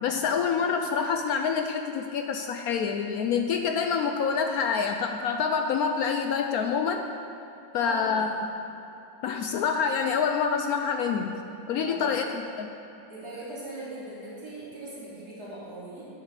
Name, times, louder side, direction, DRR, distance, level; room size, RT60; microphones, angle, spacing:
voice 1, 0.0-7.0 7.7-8.3 9.2-11.3 11.7-12.7, left 6 dB, 80° left, 5 dB, 0.8 m, -27 dB
voice 2, 7.8-8.2 11.7-12.1 13.1-16.1, right 1 dB, 50° right, -9 dB, 3.5 m, -40 dB
10.0 x 6.4 x 7.2 m, 2.9 s
omnidirectional pair, 2.0 m